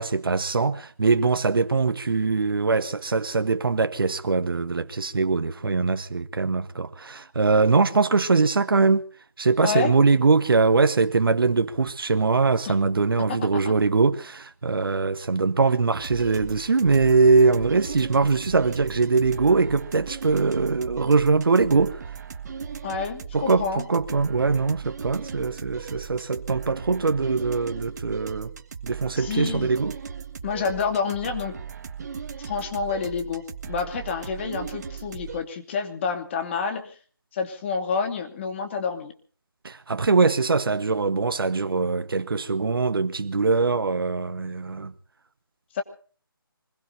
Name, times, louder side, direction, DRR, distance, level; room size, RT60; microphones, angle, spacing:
voice 1, 0.0-9.1 9.4-22.0 23.3-28.5 28.8-29.9 39.6-44.9, right 4 dB, 70° right, 1.2 m, -22 dB
voice 2, 9.6-9.9 12.6-12.7 13.2-13.5 22.8-23.9 29.1-29.7 30.4-31.6 32.4-37.0 37.3-39.1 45.7-45.8, left 5 dB, 30° left, 2.6 m, -28 dB
sound 1, 16.0-35.4, right 7 dB, 45° right, 1.6 m, -37 dB
25.0 x 21.0 x 2.7 m
figure-of-eight pair, 155°, 12 cm